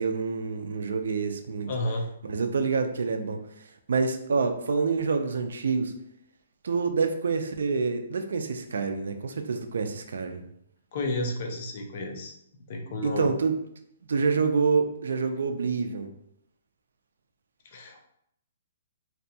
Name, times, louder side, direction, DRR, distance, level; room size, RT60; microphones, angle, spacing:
voice 1, 0.0-1.7 2.2-5.9 6.6-10.4 13.0-13.5 14.1-16.1, right 4 dB, 70° right, 6 dB, 0.3 m, -27 dB
voice 2, 1.7-2.0 10.9-12.4 12.7-13.3 17.7-18.1, left 2 dB, 30° left, 2 dB, 0.3 m, -31 dB
2.6 x 2.2 x 2.7 m, 0.73 s
hypercardioid pair, 180°, 0 cm